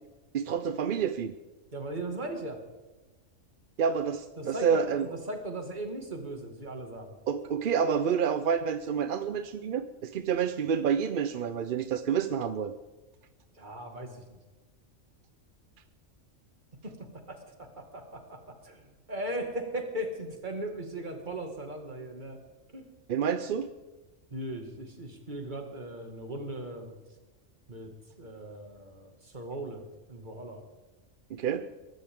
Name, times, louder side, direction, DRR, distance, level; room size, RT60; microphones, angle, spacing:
voice 1, 0.3-1.3 3.8-5.1 7.3-12.7 23.1-23.7 31.3-31.7, right 7 dB, 55° right, 11 dB, 0.6 m, -28 dB
voice 2, 1.7-2.6 4.4-7.2 13.6-14.4 16.8-22.4 22.7-22.8 24.3-26.9 27.7-27.9 28.2-30.6, right 1 dB, 35° right, 4 dB, 2.1 m, -38 dB
22.5 x 13.0 x 3.7 m, 1.2 s
omnidirectional pair, 1.3 m